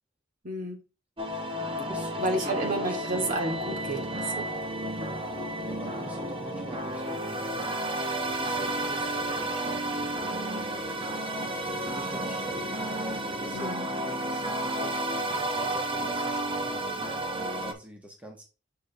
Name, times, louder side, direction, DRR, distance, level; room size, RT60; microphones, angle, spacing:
voice 1, 0.4-0.8 2.2-4.5 5.0-5.2 13.5-13.9, right 2 dB, 45° right, 2.1 m, -31 dB
sound 1, 1.2-17.7, right 1 dB, 30° right, 1.2 m, -32 dB
voice 2, 1.3-3.3 3.5-3.6 5.1-7.8 8.3-10.9 11.7-15.1 15.5-18.4, right 1 dB, 5° right, 1.3 m, -45 dB
6.8 x 5.1 x 3.6 m
head